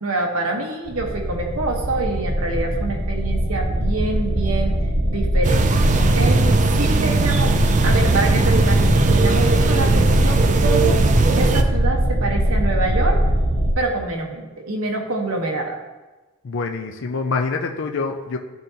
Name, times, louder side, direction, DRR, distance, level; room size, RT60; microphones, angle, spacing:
voice 1, 0.0-4.8 5.0-7.6 7.8-11.0 11.3-13.2 13.8-15.8, right 2 dB, 80° right, 1 dB, 1.1 m, -26 dB
sound 1, 0.9-13.7, right 1 dB, 65° right, 1.6 m, -21 dB
sound 2, 5.4-11.6, right 3 dB, 35° right, 0.4 m, -19 dB
voice 2, 16.4-18.4, left 4 dB, 60° left, 4 dB, 0.5 m, -25 dB
11.5 x 3.9 x 2.8 m, 1.2 s
head